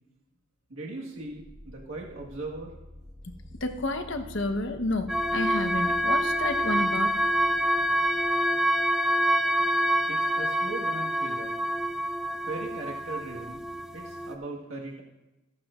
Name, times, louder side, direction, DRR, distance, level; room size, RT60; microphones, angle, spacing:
voice 1, 0.7-2.7 10.1-11.6 12.5-13.6 13.9-15.0, right 2 dB, 80° right, -3 dB, 1.6 m, -38 dB
sound 1, 1.1-8.9, left 1 dB, 20° right, 2.6 m, -48 dB
voice 2, 3.6-7.2, left 2 dB, 65° left, 6 dB, 1.0 m, -30 dB
sound 2, 5.1-14.3, equal, 5° right, 0.6 m, -26 dB
16.0 x 11.5 x 2.5 m, 1.0 s
head